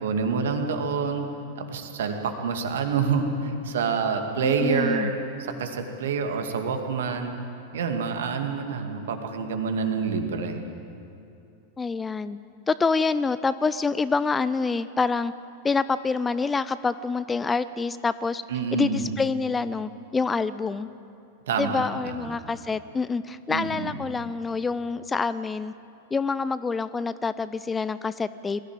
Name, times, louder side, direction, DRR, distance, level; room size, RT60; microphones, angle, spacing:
voice 1, 0.0-1.3 1.6-5.1 5.6-7.4 7.7-10.6 18.5-19.1 21.5-22.3 23.5-23.9, right 5 dB, 60° right, 5 dB, 2.3 m, -27 dB
voice 2, 4.4-5.1 11.8-12.4 12.7-15.3 15.6-18.4 18.7-20.9 21.6-25.7 26.1-28.6, left 4 dB, 15° left, 15 dB, 0.5 m, -26 dB
22.5 x 15.0 x 8.9 m, 2.7 s
figure-of-eight pair, 90°, 0 cm